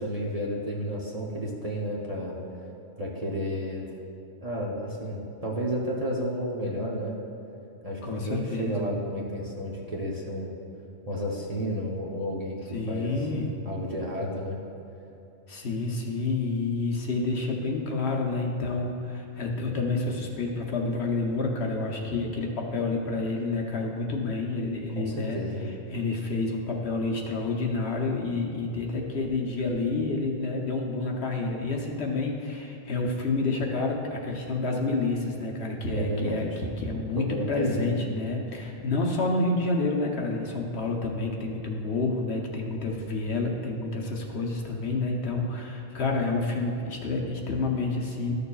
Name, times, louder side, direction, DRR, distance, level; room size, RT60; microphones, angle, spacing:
voice 1, 0.0-2.4 3.0-3.8 4.4-7.1 7.8-10.5 11.1-12.6 12.9-13.3 13.6-14.6 25.0-25.7 35.9-36.5 36.9-38.1, equal, 35° right, -4 dB, 0.9 m, -32 dB
voice 2, 8.0-8.8 12.7-13.5 15.5-25.4 25.9-48.3, left 3 dB, 60° left, 0 dB, 1.0 m, -29 dB
13.0 x 6.7 x 2.3 m, 2.8 s
omnidirectional pair, 1.3 m